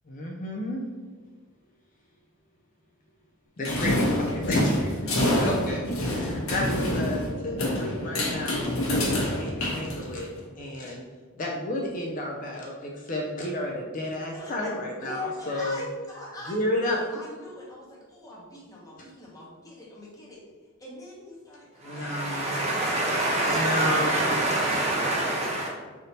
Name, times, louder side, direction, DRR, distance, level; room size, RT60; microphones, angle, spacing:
voice 1, 0.1-0.9 3.6-5.1 5.4-11.0 11.4-15.8 16.4-17.3 21.8-22.6 23.5-24.4, left 1 dB, 40° left, 0.4 m, -31 dB
sound 1, 3.6-10.4, left 1 dB, 80° left, 1.0 m, -27 dB
voice 2, 14.3-14.8 15.0-20.4 20.8-22.8 23.2-23.6 24.6-24.8, left 2 dB, 15° left, 0.9 m, -42 dB
voice 3, 21.8-25.7, right 1 dB, 30° right, 0.9 m, -26 dB
3.5 x 2.7 x 4.0 m
head